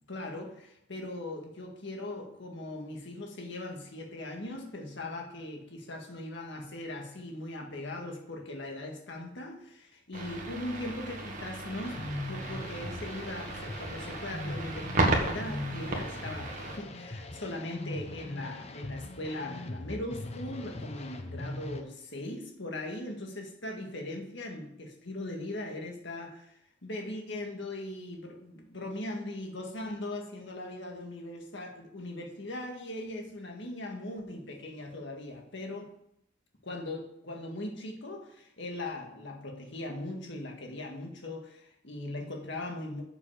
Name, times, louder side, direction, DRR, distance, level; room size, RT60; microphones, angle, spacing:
voice 1, 0.0-35.9 36.6-43.0, left 1 dB, 60° left, 1.9 m, -39 dB
sound 1, 10.1-16.8, right 2 dB, 40° right, 1.6 m, -34 dB
sound 2, 11.8-21.8, left 1 dB, 30° left, 0.8 m, -40 dB
7.1 x 6.9 x 7.1 m
head